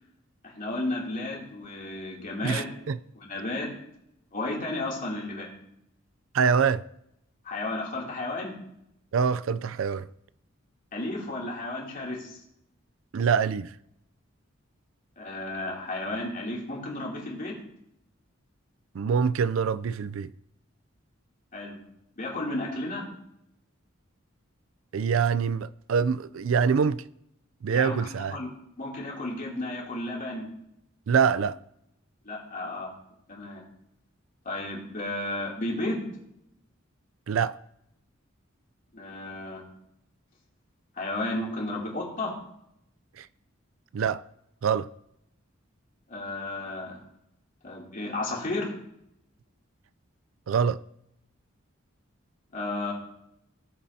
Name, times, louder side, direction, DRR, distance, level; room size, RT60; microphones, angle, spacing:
voice 1, 0.4-2.8 3.1-3.7 4.3-5.5 7.4-8.5 10.9-12.4 15.2-17.6 21.5-21.8 22.2-23.1 27.7-28.5 28.8-30.5 32.2-32.9 33.3-33.6 34.4-36.1 38.9-39.6 41.0-42.3 46.1-47.0 47.6-48.7 52.5-52.9, left 2 dB, 40° left, 2.8 m, -33 dB
voice 2, 2.4-3.0 6.3-6.8 9.1-10.1 13.1-13.7 18.9-20.3 24.9-27.0 27.6-28.4 31.1-31.6 37.3-37.6 43.2-43.3 43.9-44.2 44.6-44.9 50.5-50.8, right 6 dB, 70° right, 0.4 m, -25 dB
17.5 x 7.3 x 2.8 m
head